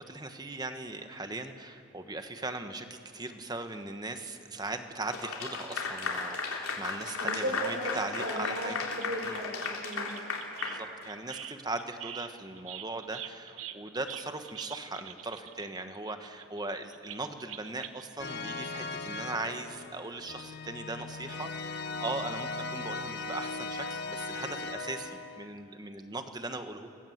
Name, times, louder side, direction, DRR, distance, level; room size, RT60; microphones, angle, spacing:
voice 1, 0.0-8.8 9.2-9.4 10.6-26.9, right 2 dB, 20° right, 7 dB, 1.4 m, -39 dB
Clapping / Applause, 5.1-11.5, left 4 dB, 90° left, 3.6 m, -35 dB
voice 2, 7.2-10.1, right 1 dB, 55° right, 2 dB, 5.0 m, -36 dB
sound 1, 8.3-8.4 8.7-10.8 11.1-18.1 18.9-19.0 19.2-19.3, right 11 dB, 75° right, 1.2 m, -45 dB
sound 2, 18.2-25.5, left 3 dB, 50° left, 1.5 m, -38 dB
28.5 x 21.5 x 8.1 m, 2.6 s
head